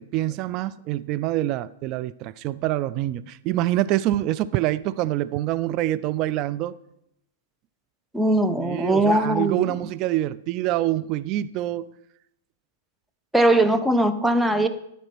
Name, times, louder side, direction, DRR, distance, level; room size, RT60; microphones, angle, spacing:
voice 1, 0.0-6.8 8.6-11.9, right 14 dB, 40° right, 0.3 m, -26 dB
voice 2, 8.1-9.8 13.3-14.7, right 1 dB, 5° right, 0.7 m, -20 dB
11.5 x 4.3 x 5.9 m
figure-of-eight pair, 105°, 0 cm